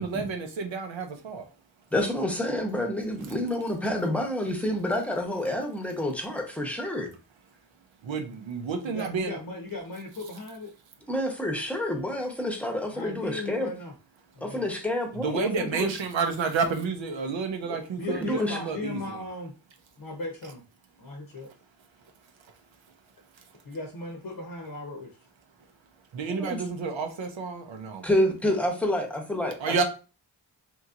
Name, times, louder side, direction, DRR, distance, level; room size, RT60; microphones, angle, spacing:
voice 1, 0.0-1.5 8.0-9.4 15.2-19.2 26.1-28.0 29.6-29.8, right 5 dB, 85° right, 5 dB, 0.6 m, -30 dB
voice 2, 1.9-7.1 11.1-13.7 14.4-16.0 17.7-17.8 18.1-18.6 26.3-26.6 28.0-29.8, left 1 dB, 5° left, 3 dB, 0.8 m, -28 dB
voice 3, 8.8-10.7 12.9-13.9 14.3-14.7 18.0-19.5 20.0-20.6 21.0-21.5 23.6-25.1, left 2 dB, 55° left, 2 dB, 0.8 m, -37 dB
2.9 x 2.7 x 2.4 m, 0.34 s
cardioid pair, 50°, 44 cm